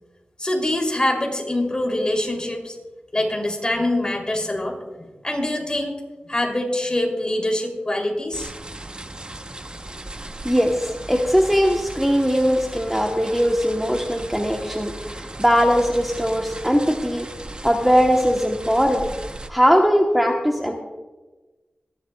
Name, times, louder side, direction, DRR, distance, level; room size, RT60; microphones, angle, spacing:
voice 1, 0.4-2.8 3.1-6.0 6.3-8.5, left 1 dB, 25° left, 1 dB, 2.9 m, -24 dB
sound 1, 8.3-19.5, right 2 dB, 30° right, 0.8 m, -37 dB
voice 2, 10.4-19.1 19.5-20.7, equal, 5° right, 1 dB, 1.0 m, -20 dB
25.0 x 11.0 x 2.3 m, 1.2 s
wide cardioid pair, 70°, 3 cm